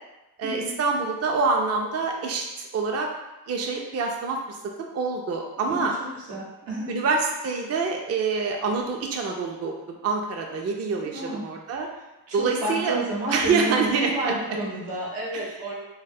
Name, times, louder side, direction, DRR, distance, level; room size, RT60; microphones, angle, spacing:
voice 1, 0.4-3.1 3.5-5.9 6.9-11.9 12.3-13.0 13.3-14.3, right 4 dB, 40° right, 1 dB, 0.4 m, -26 dB
voice 2, 6.3-6.9 11.0-11.4 12.3-15.7, right 1 dB, 85° right, -5 dB, 0.9 m, -30 dB
2.2 x 2.0 x 3.4 m, 1.0 s
cardioid pair, 55°, 42 cm